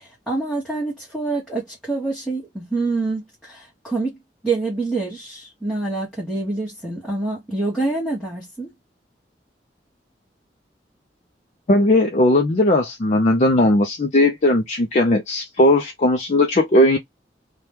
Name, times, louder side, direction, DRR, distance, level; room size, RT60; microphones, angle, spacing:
voice 1, 0.0-4.2 4.4-8.7, right 3 dB, ahead, 1.0 m, -26 dB
voice 2, 11.7-17.0, left 1 dB, 40° left, 0.4 m, -17 dB
2.8 x 2.2 x 3.2 m
head